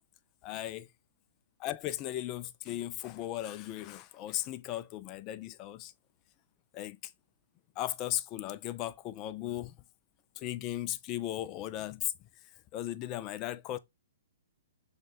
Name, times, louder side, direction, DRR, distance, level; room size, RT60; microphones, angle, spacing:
voice 1, 0.4-0.9 1.6-5.9 6.7-7.1 7.8-9.8 10.4-12.3 12.7-13.8, left 13 dB, 30° left, 0.3 m, -37 dB
6.2 x 2.2 x 2.4 m
hypercardioid pair, 125°, 0 cm